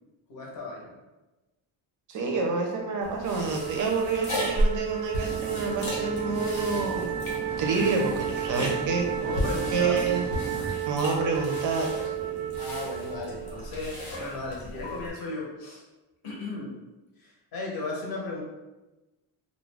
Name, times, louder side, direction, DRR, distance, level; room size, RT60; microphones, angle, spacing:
voice 1, 0.3-0.9 9.2-10.1 12.5-15.8 16.2-16.7 17.2-18.4, left 3 dB, 45° left, -3 dB, 0.7 m, -35 dB
voice 2, 2.1-7.2 7.6-9.1 9.7-10.2 10.8-12.5, right 4 dB, 45° right, 2 dB, 0.4 m, -28 dB
sound 1, 3.0-15.1, equal, 90° left, 1.0 m, -34 dB
Wind instrument woodwind instrument, 3.5-13.8, right 13 dB, 85° right, 0.6 m, -33 dB
sound 2, 5.2-10.7, right 1 dB, 5° left, 0.6 m, -38 dB
2.4 x 2.0 x 3.2 m, 1.1 s
cardioid pair, 175°, 48 cm